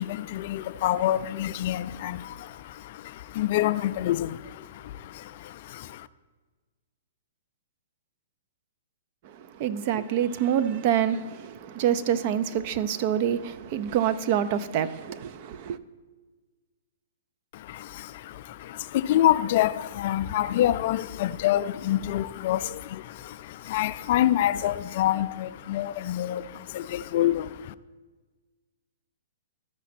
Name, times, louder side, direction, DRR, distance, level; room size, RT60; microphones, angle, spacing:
voice 1, 0.0-6.1 17.5-27.7, left 13 dB, 50° left, 0.3 m, -27 dB
voice 2, 9.2-15.8, right 9 dB, 45° right, 0.5 m, -26 dB
12.5 x 5.0 x 4.2 m
hypercardioid pair, 120°, 0 cm